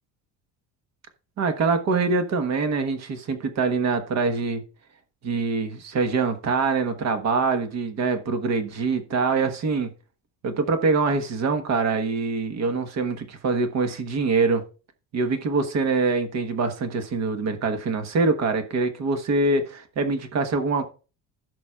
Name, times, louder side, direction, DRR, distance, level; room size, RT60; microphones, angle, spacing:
voice 1, 1.4-4.6 5.2-9.9 10.4-14.6 15.1-20.8, right 4 dB, 40° right, 1.3 m, -24 dB
15.5 x 6.1 x 2.4 m
cardioid pair, 175°, 41 cm